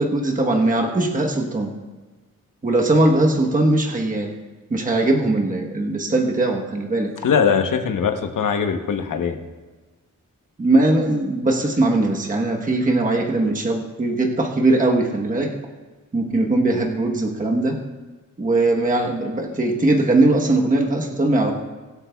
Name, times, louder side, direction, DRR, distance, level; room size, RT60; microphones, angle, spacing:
voice 1, 0.0-1.7 2.6-4.3 4.7-7.1 10.6-15.5 16.1-17.7 18.4-21.5, right 2 dB, 25° right, 0 dB, 1.1 m, -20 dB
voice 2, 7.2-9.5, left 6 dB, 75° left, 6 dB, 1.0 m, -21 dB
23.5 x 8.1 x 2.3 m, 1.3 s
wide cardioid pair, 160°, 32 cm